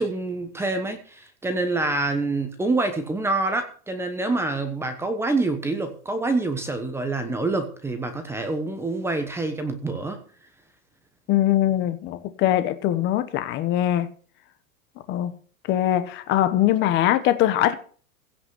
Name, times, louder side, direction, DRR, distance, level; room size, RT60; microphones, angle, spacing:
voice 1, 0.0-10.2, right 2 dB, 5° right, 1.1 m, -26 dB
voice 2, 11.3-14.1 15.1-15.3 15.7-17.7, left 12 dB, 25° left, 1.2 m, -22 dB
16.0 x 6.0 x 7.8 m
supercardioid pair, 160°, 46 cm